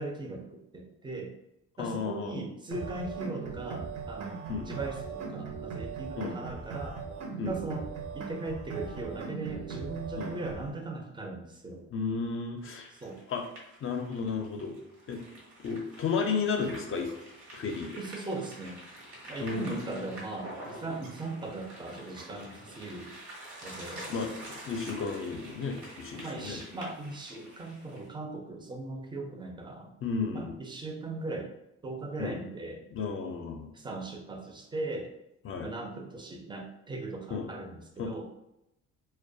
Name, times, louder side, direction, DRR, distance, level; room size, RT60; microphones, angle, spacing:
voice 1, 0.0-1.3 1.8-7.0 7.5-7.9 8.1-11.9 12.9-13.2 18.0-18.8 19.3-23.1 23.6-24.1 26.2-29.9 30.3-31.5 31.8-32.8 33.7-35.1 35.6-38.2, right 2 dB, 15° right, 2 dB, 0.4 m, -39 dB
voice 2, 1.8-2.4 4.5-4.7 6.2-6.4 7.4-7.5 10.2-10.3 11.9-12.9 13.3-13.4 13.8-14.7 15.1-15.2 15.6-17.1 17.5-17.9 19.4-20.0 24.1-24.4 24.7-26.6 30.0-30.5 32.2-32.4 32.9-33.7 35.4-35.7 37.3-37.5 38.0-38.2, left 5 dB, 45° left, 3 dB, 0.5 m, -33 dB
sound 1, 2.7-10.7, right 5 dB, 60° right, 0.6 m, -39 dB
sound 2, 12.6-28.1, right 1 dB, 80° right, 0.9 m, -47 dB
2.2 x 2.2 x 2.6 m, 0.85 s
cardioid pair, 90°, 30 cm